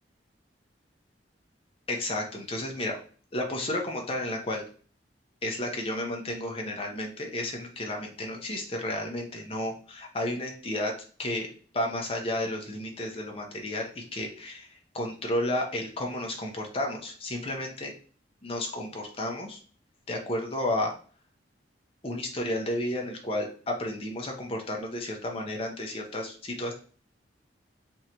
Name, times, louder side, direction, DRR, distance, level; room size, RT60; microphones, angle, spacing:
voice 1, 1.9-3.0 3.3-4.7 5.4-10.9 11.2-11.5 11.7-14.7 14.9-17.9 18.4-19.6 20.1-20.9 22.0-26.7, left 1 dB, 30° left, 1 dB, 0.9 m, -32 dB
3.6 x 3.2 x 2.9 m, 0.40 s
head